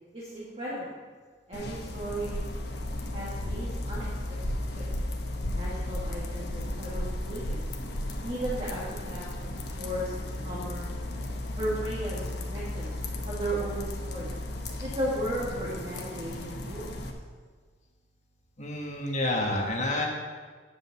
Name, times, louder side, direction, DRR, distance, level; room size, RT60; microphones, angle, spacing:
voice 1, 0.1-0.9 1.5-2.4 3.1-4.1 4.5-4.9 5.5-7.6 8.2-10.1 10.4-10.9 11.6-12.9 13.2-14.3 14.8-16.9, right 1 dB, 35° right, -7 dB, 1.7 m, -35 dB
sound 1, 1.5-17.1, left 1 dB, 65° left, 1.0 m, -34 dB
voice 2, 18.6-20.1, left 1 dB, 40° left, 0 dB, 1.6 m, -29 dB
9.6 x 5.2 x 7.1 m, 1.5 s
head